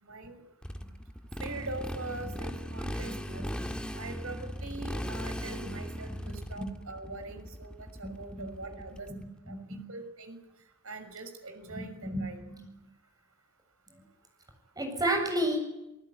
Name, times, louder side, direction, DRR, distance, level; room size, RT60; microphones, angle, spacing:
voice 1, 0.0-0.4 1.4-3.4 3.9-9.1 9.5-10.4 10.8-12.4, right 2 dB, 70° right, 6 dB, 6.3 m, -42 dB
Motorcycle, 0.6-9.2, equal, 5° left, 2.0 m, -38 dB
voice 2, 6.2-6.7 8.0-8.5 9.1-9.2 9.5-9.8 11.7-12.7 14.8-15.6, right 1 dB, 20° right, 4 dB, 7.4 m, -33 dB
28.5 x 19.5 x 9.8 m, 0.94 s
head